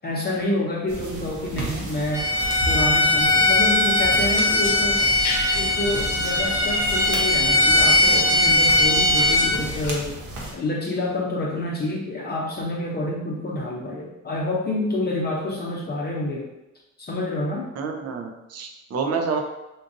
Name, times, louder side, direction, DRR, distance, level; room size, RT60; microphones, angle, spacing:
voice 1, 0.0-2.3 2.7-5.1 5.5-10.1 10.5-16.5 17.0-17.7, left 1 dB, 35° left, -3 dB, 0.6 m, -28 dB
sound 1, 0.9-10.5, right 2 dB, 75° right, 0.8 m, -34 dB
Bowed string instrument, 2.1-9.5, left 2 dB, 10° right, 0.8 m, -20 dB
sound 2, 4.6-9.9, left 4 dB, 75° left, 0.8 m, -35 dB
voice 2, 17.8-19.4, right 5 dB, 55° right, 4 dB, 0.6 m, -28 dB
3.8 x 2.6 x 2.6 m, 0.96 s
cardioid pair, 90°, 30 cm